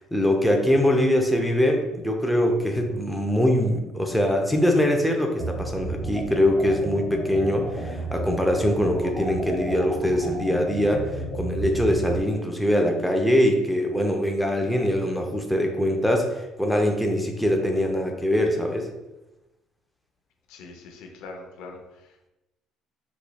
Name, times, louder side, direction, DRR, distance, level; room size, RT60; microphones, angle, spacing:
voice 1, 0.1-11.1 11.4-18.9, left 1 dB, ahead, 1 dB, 0.5 m, -23 dB
sound 1, 5.4-12.2, right 2 dB, 15° right, 1.2 m, -32 dB
voice 2, 20.5-22.3, left 3 dB, 80° left, 3 dB, 0.6 m, -43 dB
4.1 x 3.0 x 2.3 m, 0.99 s
cardioid pair, 120°, 0 cm